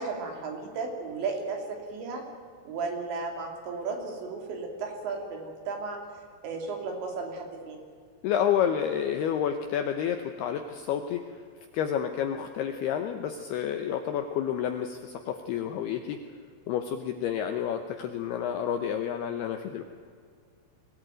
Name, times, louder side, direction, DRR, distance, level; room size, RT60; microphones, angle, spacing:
voice 1, 0.0-2.2 2.7-6.0 6.4-7.8, right 4 dB, 65° right, 3 dB, 4.8 m, -34 dB
voice 2, 8.2-11.3 11.7-16.2 16.7-19.8, left 9 dB, 75° left, 7 dB, 2.4 m, -29 dB
22.0 x 17.5 x 9.1 m, 2.2 s
omnidirectional pair, 5.7 m